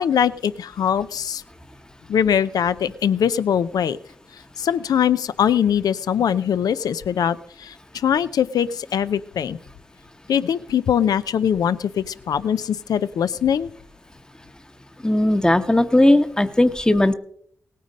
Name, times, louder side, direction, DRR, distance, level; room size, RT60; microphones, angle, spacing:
voice 1, 0.0-1.4 2.1-4.0 4.6-9.6 10.3-13.7, left 8 dB, 90° left, 15 dB, 0.5 m, -22 dB
voice 2, 15.0-17.1, left 1 dB, 10° left, 10 dB, 0.9 m, -17 dB
18.0 x 9.3 x 5.2 m, 0.66 s
cardioid pair, 55°, 6 cm